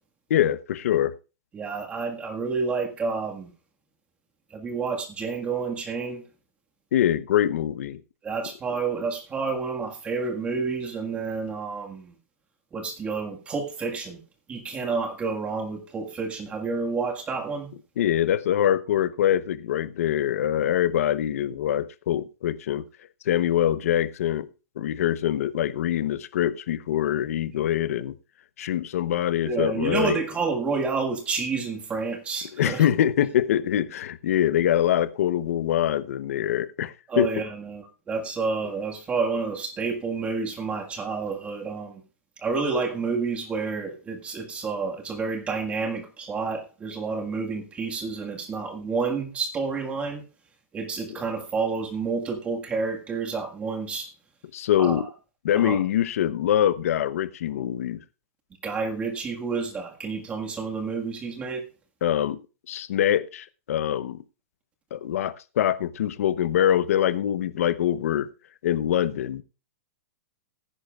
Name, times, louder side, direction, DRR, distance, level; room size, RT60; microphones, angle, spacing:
voice 1, 0.3-1.1 6.9-8.0 18.0-22.8 23.2-24.5 24.8-28.2 28.6-30.2 32.5-37.3 54.5-55.1 55.4-58.0 62.0-62.4 62.7-64.2 64.9-68.3 68.6-69.4, left 11 dB, 65° left, 0.9 m, -24 dB
voice 2, 1.5-3.5 4.5-6.2 8.2-12.1 12.7-14.2 14.5-17.7 29.4-32.9 37.1-42.0 42.4-50.2 50.7-54.1 54.8-55.1 55.5-55.8 58.6-61.7, right 4 dB, 15° right, 1.7 m, -29 dB
18.0 x 10.0 x 2.4 m
hypercardioid pair, 160°, 8 cm